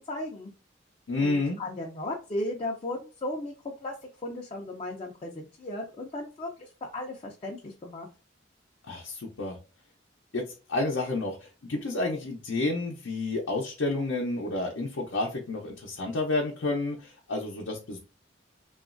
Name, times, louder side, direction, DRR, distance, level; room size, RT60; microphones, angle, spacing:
voice 1, 0.1-0.5 1.2-3.5 3.8-3.9 4.2-8.1, left 1 dB, 30° left, -1 dB, 0.4 m, -36 dB
voice 2, 1.1-1.6 8.8-9.6 10.3-10.4 10.7-11.4 11.7-18.0, left 2 dB, 75° left, -1 dB, 0.6 m, -30 dB
3.0 x 2.4 x 2.4 m, 0.33 s
head